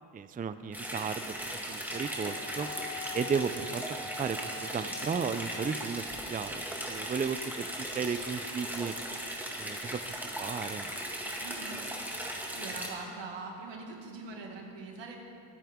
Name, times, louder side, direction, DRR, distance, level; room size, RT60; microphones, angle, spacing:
voice 1, 0.1-1.3 1.7-2.7 3.1-3.8 4.2-7.7 7.9-8.9 9.6-10.0 10.4-10.9, right 6 dB, 20° right, 11 dB, 0.4 m, -34 dB
sound 1, 0.7-12.9, equal, 5° right, 2.0 m, -38 dB
Wind instrument woodwind instrument, 1.9-6.0, left 3 dB, 20° left, 0.8 m, -45 dB
voice 2, 11.4-11.8 12.1-15.2, right 3 dB, 85° right, 0 dB, 2.1 m, -43 dB
23.5 x 9.1 x 3.6 m, 2.4 s
cardioid pair, 100°, 43 cm